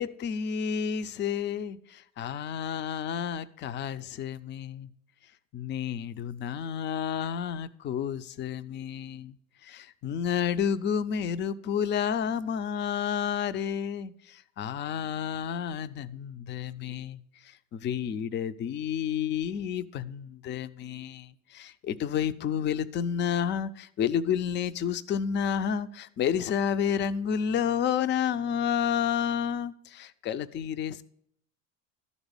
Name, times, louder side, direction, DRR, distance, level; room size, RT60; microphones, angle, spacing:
voice 1, 0.0-4.9 5.5-9.4 9.6-31.0, left 8 dB, 30° left, 14 dB, 0.4 m, -30 dB
12.0 x 4.1 x 6.9 m, 0.70 s
hypercardioid pair, 80°, 39 cm